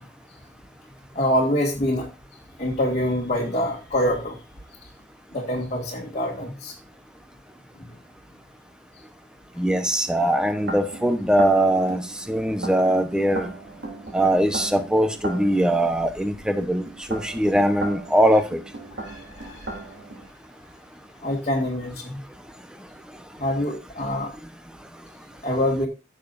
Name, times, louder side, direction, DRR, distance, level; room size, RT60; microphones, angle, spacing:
voice 1, 1.2-2.1 2.6-4.4 5.3-6.7 7.8-7.9 19.0-19.8 21.2-22.2 23.4-24.3 25.4-25.9, left 1 dB, 35° left, -3 dB, 2.0 m, -25 dB
voice 2, 9.6-12.0 12.3-13.5 14.1-18.6, right 1 dB, 5° right, 7 dB, 1.0 m, -21 dB
sound 1, 10.1-20.3, right 2 dB, 65° right, 3.1 m, -37 dB
15.0 x 7.0 x 2.6 m, 0.30 s
head